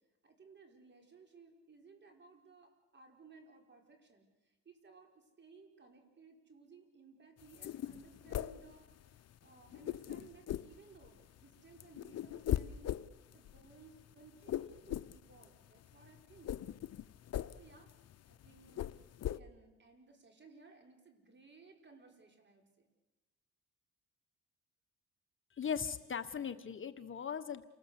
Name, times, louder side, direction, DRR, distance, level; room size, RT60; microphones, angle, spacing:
voice 1, 0.2-13.0 13.3-16.6 17.5-17.9 18.3-22.9, right 4 dB, 35° right, 3 dB, 5.5 m, -60 dB
sound 1, 7.4-9.3 9.6-11.4 11.7-19.4, left 12 dB, 55° left, 0.8 m, -40 dB
voice 2, 25.5-27.6, left 7 dB, 40° left, 10 dB, 1.2 m, -39 dB
28.5 x 19.5 x 8.3 m, 1.1 s
cardioid pair, 90°, 30 cm